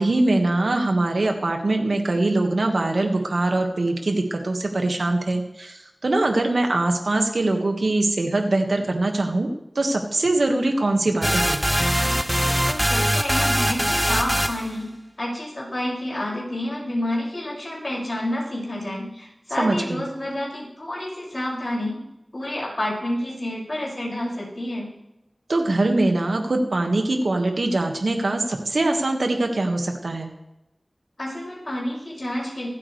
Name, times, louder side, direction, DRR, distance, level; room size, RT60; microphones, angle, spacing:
voice 1, 0.0-9.5 9.8-11.6 19.6-20.1 25.5-30.3, right 2 dB, 80° right, 4 dB, 1.7 m, -22 dB
sound 1, 11.2-14.7, equal, 5° right, 0.5 m, -22 dB
voice 2, 12.7-14.9 15.2-22.0 22.3-24.9 31.2-32.7, left 1 dB, 50° left, -4 dB, 6.2 m, -29 dB
25.0 x 8.8 x 3.3 m, 0.89 s
wide cardioid pair, 50°, 0 cm